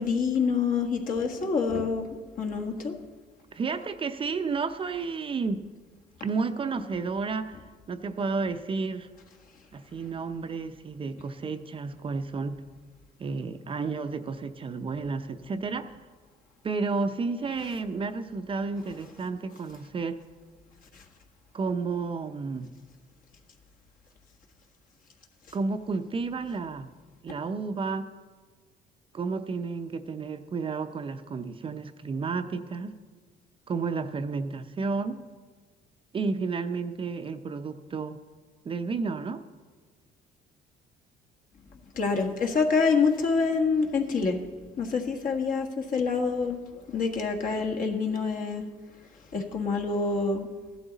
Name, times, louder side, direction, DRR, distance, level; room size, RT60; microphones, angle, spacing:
voice 1, 0.0-2.1 2.4-2.9 41.9-44.4 44.8-46.6 46.9-48.7 49.3-50.5, left 5 dB, 55° left, 2 dB, 1.6 m, -26 dB
voice 2, 3.5-5.7 6.2-7.6 7.9-9.1 9.7-12.6 13.2-15.9 16.6-20.2 21.5-22.7 25.5-26.9 27.2-28.1 29.1-32.9 33.7-35.2 36.1-38.2 38.6-39.4, right 4 dB, 30° right, 8 dB, 0.6 m, -31 dB
15.0 x 12.0 x 4.0 m, 1.5 s
cardioid pair, 110°, 17 cm